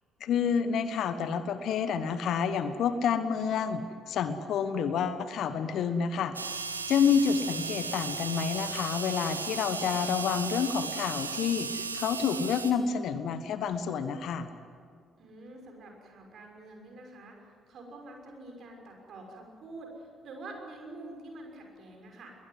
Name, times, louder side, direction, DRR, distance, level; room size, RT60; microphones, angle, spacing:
voice 1, 0.2-6.3 6.9-14.5, left 7 dB, 55° left, 11 dB, 1.3 m, -29 dB
sound 1, 6.3-12.7, right 4 dB, 85° right, 1.0 m, -36 dB
voice 2, 15.2-22.4, right 2 dB, 50° right, 1 dB, 6.0 m, -47 dB
21.5 x 20.0 x 9.6 m, 2.1 s
figure-of-eight pair, 45°, 0 cm